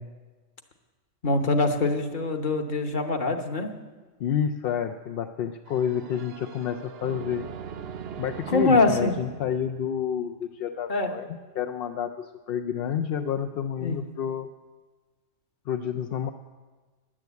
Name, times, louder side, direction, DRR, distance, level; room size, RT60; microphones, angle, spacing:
voice 1, 1.2-3.7 8.5-9.1 10.9-11.1 13.8-14.0, left 3 dB, 45° left, 5 dB, 1.2 m, -24 dB
voice 2, 4.2-7.5 8.2-14.5 15.7-16.3, left 8 dB, 60° left, 4 dB, 0.6 m, -29 dB
sound 1, 5.7-10.4, right 7 dB, 60° right, 0.8 m, -40 dB
10.5 x 9.8 x 8.2 m, 1.3 s
omnidirectional pair, 1.3 m